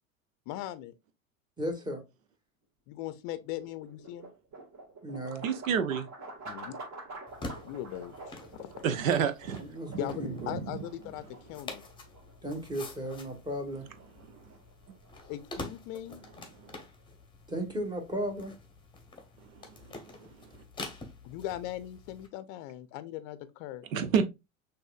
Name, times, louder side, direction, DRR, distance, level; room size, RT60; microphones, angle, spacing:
voice 1, 0.5-0.9 2.9-4.3 6.5-6.8 7.6-8.7 10.0-11.8 15.3-16.2 21.2-23.8, left 13 dB, 40° left, 0.6 m, -39 dB
voice 2, 1.6-2.0 5.0-5.5 9.5-10.6 12.4-13.9 17.5-18.5, right 1 dB, 10° right, 1.4 m, -35 dB
sound 1, 2.9-17.0, right 2 dB, 40° right, 2.1 m, -49 dB
voice 3, 5.4-6.1 8.8-9.6 9.9-10.0 10.5-10.7 23.9-24.3, right 7 dB, 65° right, 0.9 m, -28 dB
sound 2, 7.3-22.3, left 2 dB, 10° left, 1.0 m, -47 dB
6.2 x 2.7 x 2.4 m
hypercardioid pair, 90°, 43 cm